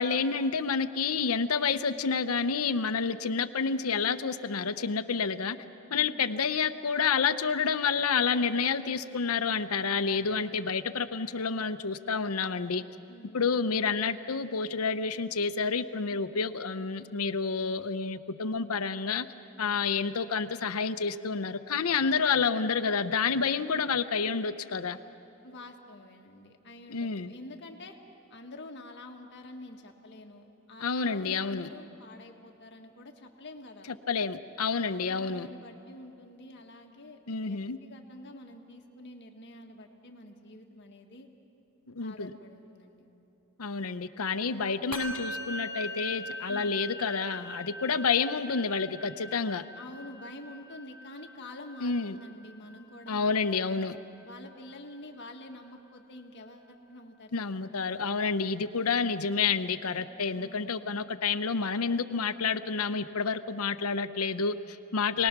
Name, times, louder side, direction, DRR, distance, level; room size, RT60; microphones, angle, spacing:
voice 1, 0.0-5.6 5.9-12.8 13.3-19.3 19.6-25.0 26.9-27.3 30.8-31.7 34.1-35.5 37.3-37.8 41.9-42.3 43.6-49.6 51.8-52.2 53.1-54.0 57.3-65.3, left 5 dB, 90° left, 11 dB, 0.8 m, -29 dB
voice 2, 5.9-6.4 13.1-13.8 25.4-27.9 28.3-33.9 34.8-41.3 42.0-43.1 44.6-44.7 46.5-46.8 49.7-53.8 54.2-57.8 60.3-61.1 65.1-65.3, left 1 dB, 55° left, 3 dB, 1.7 m, -48 dB
Musical instrument, 44.9-54.5, equal, 70° right, 2.9 m, -42 dB
28.5 x 19.5 x 6.0 m, 2.9 s
head